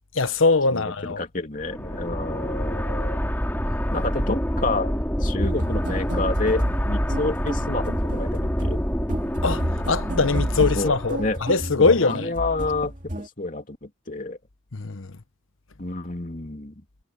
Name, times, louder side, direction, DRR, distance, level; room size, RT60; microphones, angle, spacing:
voice 1, 0.1-1.2 9.4-12.3 14.7-15.2, left 3 dB, 75° left, 1.1 m, -22 dB
voice 2, 0.7-3.2 3.9-4.9 5.2-8.8 10.7-11.4 11.8-13.0 13.4-14.4 15.8-16.7, left 2 dB, 40° left, 3.0 m, -29 dB
sound 1, 1.6-11.5, equal, 10° left, 4.8 m, -27 dB
sound 2, 5.4-13.3, equal, 40° right, 2.8 m, -31 dB
head